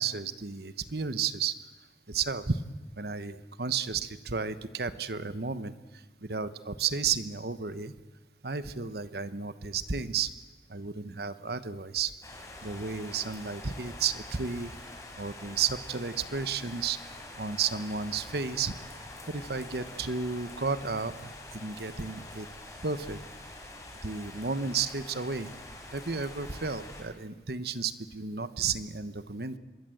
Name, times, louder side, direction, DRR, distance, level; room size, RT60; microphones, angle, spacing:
voice 1, 0.0-1.6 2.1-2.6 3.0-5.7 6.2-7.9 8.4-10.3 10.7-12.1 12.6-14.7 15.2-17.0 17.4-18.8 19.3-22.5 22.8-23.2 24.0-25.5 25.9-29.6, right 5 dB, 65° right, 13 dB, 1.1 m, -32 dB
sound 1, 12.2-27.0, left 2 dB, 20° left, 4.0 m, -45 dB
25.5 x 22.0 x 7.9 m, 1.2 s
head